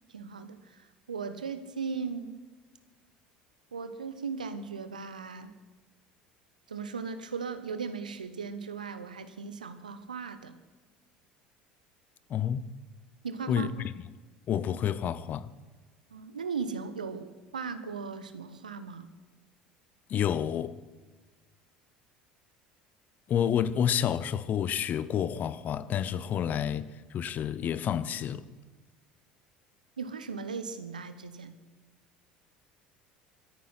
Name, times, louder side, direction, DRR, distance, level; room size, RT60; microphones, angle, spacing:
voice 1, 0.1-2.4 3.7-5.5 6.7-10.5 13.2-13.7 16.1-19.1 30.0-31.6, right 5 dB, 85° right, 1.0 m, -37 dB
voice 2, 12.3-12.6 13.5-13.7 14.5-15.5 20.1-20.7 23.3-28.4, left 9 dB, 45° left, 0.8 m, -29 dB
22.5 x 9.4 x 5.7 m
figure-of-eight pair, 65°, 4 cm